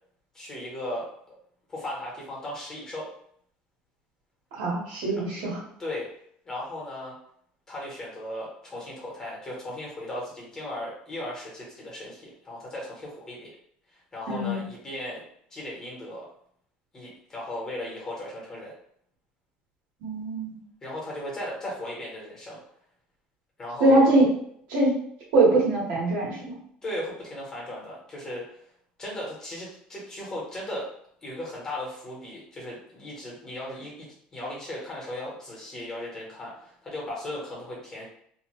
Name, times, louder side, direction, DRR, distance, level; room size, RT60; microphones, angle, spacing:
voice 1, 0.3-1.1 1.7-3.1 5.1-5.2 5.8-6.1 6.4-7.2 7.7-13.5 13.9-15.2 15.5-16.2 16.9-18.7 20.8-22.6 23.6-24.1 26.8-28.6 29.0-30.9 31.2-38.1, left 1 dB, 20° left, -4 dB, 1.0 m, -36 dB
voice 2, 4.5-5.6 14.3-14.6 20.0-20.6 23.8-24.3 24.7-24.9 25.3-26.4, right 2 dB, 80° right, -5 dB, 1.3 m, -22 dB
2.6 x 2.3 x 3.0 m, 0.66 s
cardioid pair, 160°, 3 cm